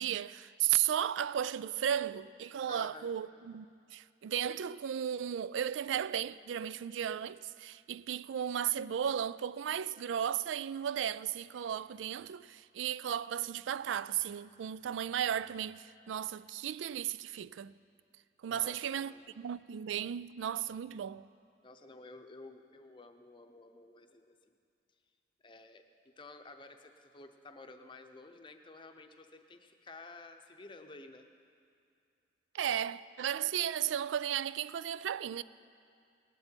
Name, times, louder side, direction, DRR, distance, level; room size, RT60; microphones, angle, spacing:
voice 1, 0.0-17.7 18.4-21.3 32.5-35.4, right 9 dB, 85° right, 0.3 m, -35 dB
voice 2, 2.7-3.1 18.5-19.2 21.6-24.5 25.4-25.8 26.2-31.3, left 3 dB, 25° left, 0.7 m, -52 dB
19.0 x 11.5 x 4.5 m
head